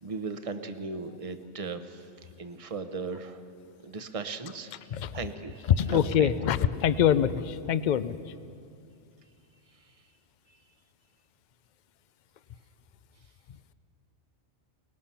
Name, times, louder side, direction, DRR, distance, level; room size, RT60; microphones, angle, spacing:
voice 1, 0.0-2.0 2.4-3.4 3.8-6.5, right 4 dB, 30° right, 9 dB, 0.9 m, -37 dB
voice 2, 5.8-8.2, left 9 dB, 50° left, 15 dB, 0.6 m, -25 dB
24.0 x 19.5 x 5.7 m, 2.4 s
omnidirectional pair, 1.2 m